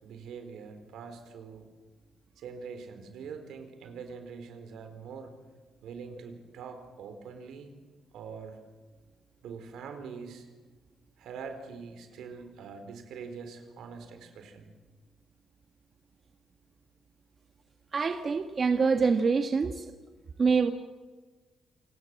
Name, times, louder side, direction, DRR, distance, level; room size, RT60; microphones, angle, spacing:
voice 1, 0.0-1.6 2.4-5.3 5.8-7.7 8.1-8.6 9.4-10.5 11.2-14.7, right 5 dB, 80° right, 7 dB, 4.2 m, -43 dB
voice 2, 17.9-19.9 20.4-20.7, right 5 dB, 40° right, 7 dB, 1.4 m, -25 dB
28.0 x 19.0 x 7.6 m, 1.3 s
cardioid pair, 90°, 0 cm